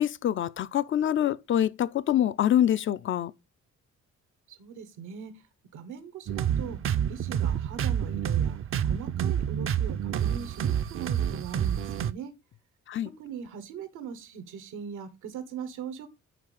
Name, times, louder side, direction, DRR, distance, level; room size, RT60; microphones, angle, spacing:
voice 1, 0.0-3.3 12.9-13.1, left 11 dB, 45° left, 0.4 m, -25 dB
voice 2, 4.6-5.3 5.7-6.8 7.1-8.6 8.9-12.3 13.0-16.1, right 7 dB, 85° right, 1.2 m, -40 dB
sound 1, 6.3-12.1, right 9 dB, 45° right, 0.5 m, -28 dB
5.9 x 4.5 x 4.9 m
cardioid pair, 90°, 30 cm